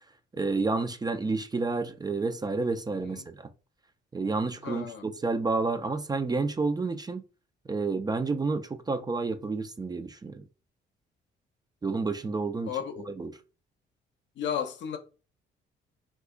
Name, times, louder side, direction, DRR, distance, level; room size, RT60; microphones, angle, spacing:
voice 1, 0.3-3.5 4.1-7.2 7.7-10.4 11.8-12.7 13.1-13.3, right 3 dB, 20° right, 0.3 m, -30 dB
voice 2, 2.9-3.3 4.6-5.1 12.6-13.1 14.4-15.0, left 8 dB, 65° left, 0.6 m, -34 dB
2.8 x 2.4 x 3.6 m
cardioid pair, 90°, 20 cm